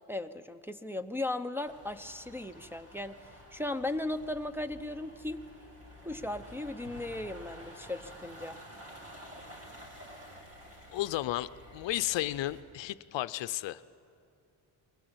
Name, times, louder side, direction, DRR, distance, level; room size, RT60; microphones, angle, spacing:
voice 1, 0.1-3.2 3.5-5.4 6.0-8.6, left 2 dB, 5° right, 5 dB, 0.6 m, -36 dB
sound 1, 1.6-12.6, equal, 30° right, 4.2 m, -51 dB
voice 2, 10.9-13.8, left 15 dB, 70° left, 15 dB, 0.6 m, -33 dB
21.5 x 16.5 x 8.0 m, 2.5 s
cardioid pair, 100°, 46 cm